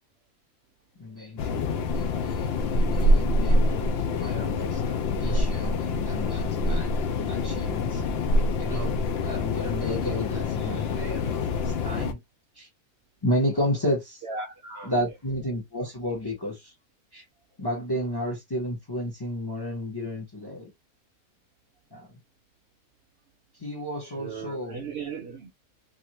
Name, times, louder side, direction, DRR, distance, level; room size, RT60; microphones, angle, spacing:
voice 1, 1.0-8.0 8.5-12.2 12.6-12.7 13.2-14.2 14.8-16.7 17.1-17.2 17.6-20.7 21.9-22.2 23.6-24.8, left 1 dB, 20° left, 0.8 m, -32 dB
sound 1, 1.4-12.1, left 2 dB, 65° left, 0.6 m, -26 dB
voice 2, 14.2-15.0 24.0-25.6, right 4 dB, 60° right, 0.7 m, -37 dB
2.7 x 2.6 x 2.9 m
omnidirectional pair, 1.6 m